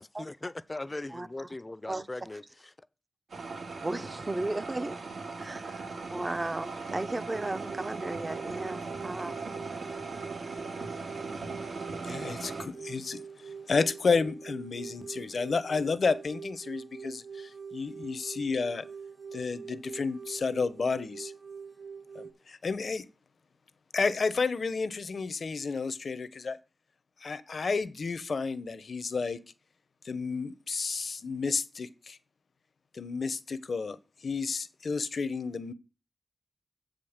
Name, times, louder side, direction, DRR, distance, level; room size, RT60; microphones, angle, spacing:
voice 1, 0.0-2.4, left 2 dB, 30° left, 0.5 m, -39 dB
sound 1, 3.3-12.7, right 3 dB, 85° right, 1.9 m, -39 dB
voice 2, 3.8-5.0 5.4-9.4, right 2 dB, 30° right, 0.6 m, -35 dB
sound 2, 7.3-22.3, right 6 dB, 65° right, 2.5 m, -44 dB
voice 3, 12.0-18.8 19.3-21.3 22.1-23.0 23.9-26.6 27.2-29.4 30.0-32.2 32.9-34.0 34.2-35.7, left 4 dB, 65° left, 0.8 m, -31 dB
7.5 x 5.2 x 7.2 m
cardioid pair, 55°, 0 cm